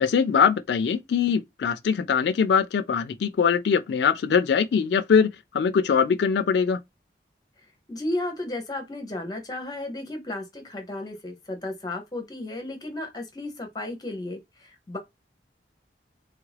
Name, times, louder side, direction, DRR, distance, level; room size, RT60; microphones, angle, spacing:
voice 1, 0.0-6.8, left 6 dB, 75° left, 0.3 m, -22 dB
voice 2, 7.9-15.0, left 1 dB, 20° left, 0.5 m, -34 dB
3.3 x 2.4 x 3.2 m
head